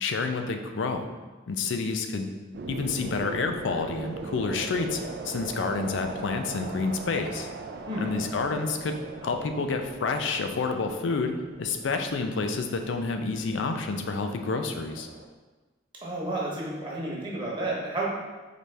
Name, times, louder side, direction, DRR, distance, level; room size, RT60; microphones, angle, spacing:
voice 1, 0.0-1.1 1.5-2.3 2.7-5.0 5.2-7.5 8.0-11.3 11.6-15.1, left 4 dB, 80° left, 6 dB, 0.4 m, -29 dB
sound 1, 2.5-15.3, right 3 dB, 55° right, 0.3 m, -40 dB
voice 2, 16.0-18.1, right 2 dB, 25° right, -5 dB, 1.0 m, -31 dB
4.1 x 3.1 x 3.4 m, 1.3 s
head